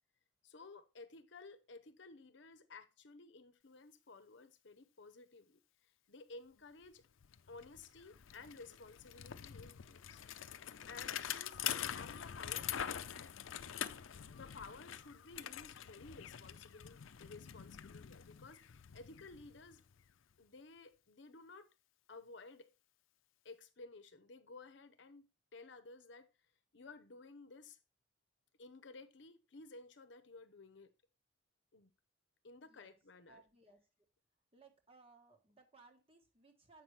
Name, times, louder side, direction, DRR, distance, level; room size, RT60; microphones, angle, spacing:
voice 1, 0.4-5.6 6.1-7.0 7.5-10.5 10.9-13.3 14.3-19.8 20.4-21.7 22.1-22.7 23.4-26.3 26.7-27.8 28.6-30.9 31.7-31.9 32.4-33.4, left 3 dB, 65° left, 0.8 m, -55 dB
Bicycle, 6.8-6.9 7.2-20.1, left 10 dB, 90° left, 0.5 m, -45 dB
voice 2, 32.6-33.0 33.3-33.8 34.5-36.8, right 3 dB, 30° right, 1.3 m, -64 dB
7.9 x 5.9 x 3.2 m
head